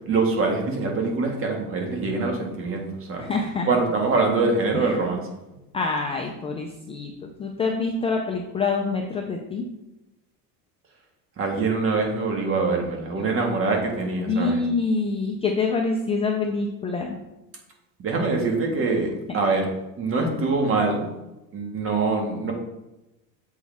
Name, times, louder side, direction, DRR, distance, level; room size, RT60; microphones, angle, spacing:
voice 1, 0.1-3.3 3.7-5.2 11.4-14.6 18.0-19.6 20.0-21.1 21.5-22.5, right 3 dB, 30° right, 1 dB, 1.7 m, -24 dB
voice 2, 3.2-3.7 4.7-5.2 5.7-9.6 14.3-17.2, left 4 dB, 15° left, 1 dB, 0.4 m, -26 dB
7.4 x 6.3 x 3.5 m, 0.98 s
cardioid pair, 155°, 41 cm